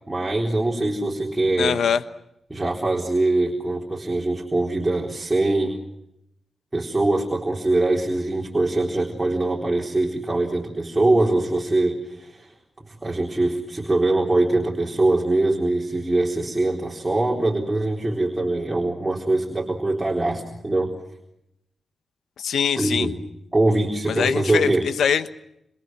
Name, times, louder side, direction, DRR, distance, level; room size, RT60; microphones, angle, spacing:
voice 1, 0.1-1.8 2.5-5.8 6.7-12.5 12.8-20.9 22.8-23.1 23.5-24.9, right 2 dB, 15° right, -1 dB, 4.0 m, -23 dB
voice 2, 1.6-2.0 22.4-23.1 24.1-25.3, left 7 dB, 90° left, 11 dB, 1.2 m, -22 dB
27.5 x 26.5 x 6.1 m, 0.83 s
wide cardioid pair, 120°, 0 cm